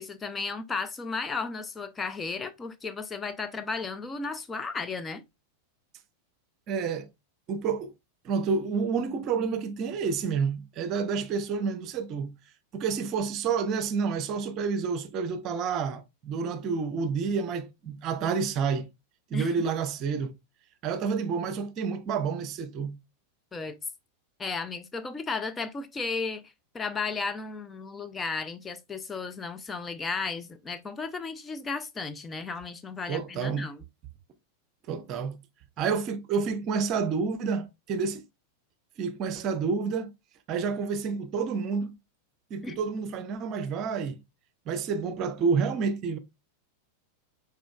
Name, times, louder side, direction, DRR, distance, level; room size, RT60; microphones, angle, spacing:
voice 1, 0.0-5.2 19.3-19.5 23.5-23.8 24.4-33.8 42.6-42.8, left 4 dB, 15° left, 0.4 m, -34 dB
voice 2, 6.7-7.1 7.5-7.9 8.2-12.3 12.7-18.9 19.3-20.3 20.8-23.0 33.1-33.7 34.9-35.4 35.8-38.2 39.0-40.1 40.5-41.9 42.5-44.2 44.7-46.2, right 5 dB, 35° right, 0.7 m, -29 dB
5.0 x 4.5 x 2.3 m
figure-of-eight pair, 90°, 0 cm